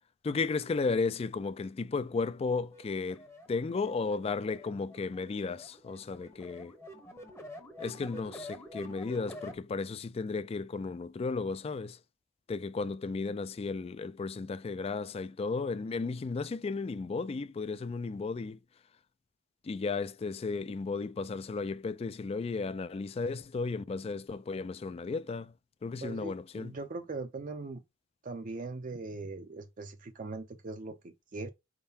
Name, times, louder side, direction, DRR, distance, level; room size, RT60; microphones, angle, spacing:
voice 1, 0.2-6.7 7.8-12.0 12.5-18.6 19.6-25.5 25.8-26.7, left 4 dB, 30° left, 0.3 m, -34 dB
sound 1, 2.6-9.6, left 1 dB, 15° left, 0.8 m, -48 dB
voice 2, 26.0-27.8 28.2-31.5, right 3 dB, 40° right, 0.5 m, -40 dB
4.4 x 3.7 x 2.7 m
head